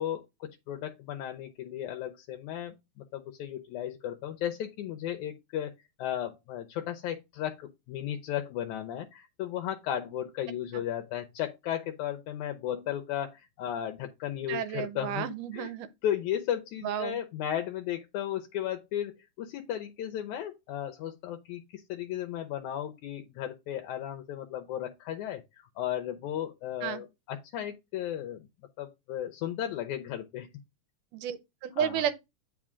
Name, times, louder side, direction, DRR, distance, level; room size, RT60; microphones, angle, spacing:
voice 1, 0.0-5.7 6.0-15.7 16.0-28.5 28.8-30.5 31.8-32.0, left 11 dB, 80° left, 2.0 m, -35 dB
voice 2, 14.5-15.9 16.8-17.2 26.8-27.0 31.1-32.2, right 9 dB, 85° right, 2.3 m, -32 dB
8.5 x 5.0 x 3.6 m
omnidirectional pair, 3.7 m